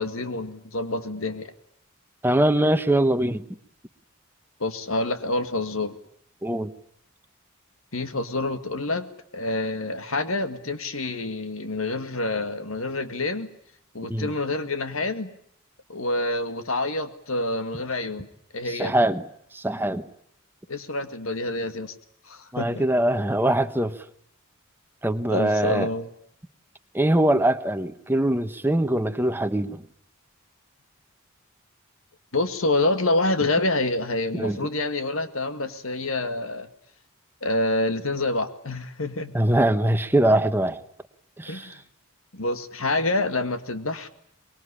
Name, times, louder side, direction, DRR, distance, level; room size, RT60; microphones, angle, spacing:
voice 1, 0.0-1.5 4.6-6.0 7.9-9.1 9.3-13.5 13.9-15.3 15.9-18.3 18.5-18.9 20.7-21.9 22.3-22.9 25.3-26.1 32.3-36.7 37.4-39.4 41.5-41.7 42.3-44.1, left 2 dB, 75° left, 2.0 m, -27 dB
voice 2, 2.2-3.4 6.4-6.7 14.1-14.3 18.6-19.2 19.5-20.1 22.5-24.0 25.0-25.9 26.9-29.8 34.3-34.6 39.3-40.8 41.4-41.8, right 1 dB, 10° right, 1.1 m, -22 dB
24.5 x 21.5 x 10.0 m
head